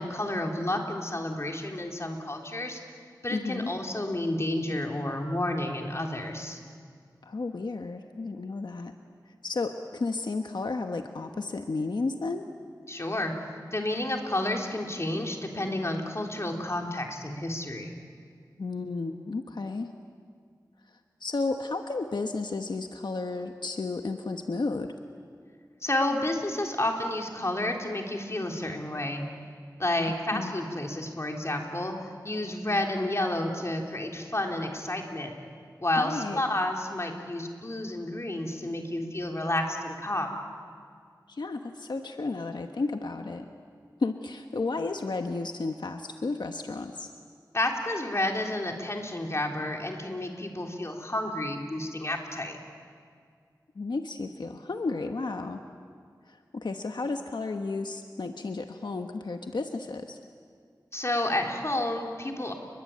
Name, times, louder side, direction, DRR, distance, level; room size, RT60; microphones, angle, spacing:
voice 1, 0.0-2.8 3.2-6.6 12.9-13.3 13.7-17.9 25.8-29.2 29.8-31.9 32.2-35.3 35.8-40.4 47.5-52.6 60.9-62.5, left 1 dB, 40° left, 2 dB, 3.7 m, -30 dB
voice 2, 3.3-3.7 7.2-8.9 9.4-12.4 18.6-19.9 21.2-24.9 30.1-30.5 36.0-36.4 41.3-43.5 44.0-47.1 53.7-55.6 56.3-60.2, left 3 dB, 85° left, 5 dB, 1.2 m, -33 dB
30.0 x 22.0 x 8.6 m, 2.1 s
wide cardioid pair, 70°, 7 cm